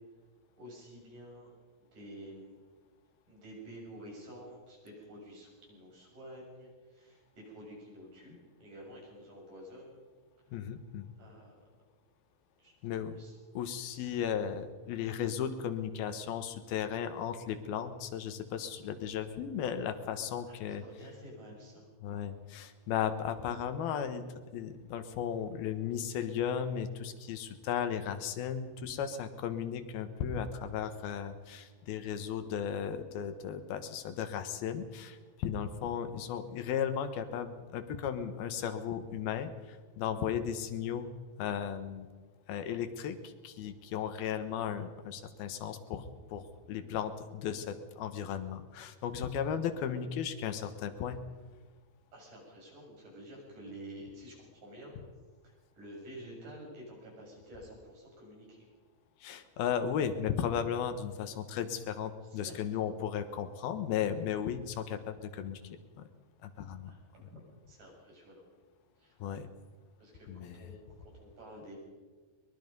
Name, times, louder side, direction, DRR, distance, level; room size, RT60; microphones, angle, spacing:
voice 1, 0.6-1.5 1.8-2.6 3.3-9.9 10.5-10.6 11.2-11.6 12.6-12.7 13.1-13.4 13.8-14.0 20.4-21.9 52.1-55.0 55.4-58.7 62.2-62.6 66.8-67.4 67.7-68.4 69.0-69.2 70.0-71.7, right 1 dB, 60° right, -2 dB, 8.8 m, -50 dB
voice 2, 10.5-11.1 12.8-13.2 13.5-20.8 22.0-24.2 24.5-41.1 41.4-42.1 42.5-51.2 59.2-65.6 66.0-66.1 66.4-66.9 67.2-67.3 69.2-69.5 70.3-70.7, left 8 dB, 85° left, 10 dB, 3.2 m, -35 dB
23.0 x 22.0 x 5.4 m, 1.4 s
omnidirectional pair, 4.2 m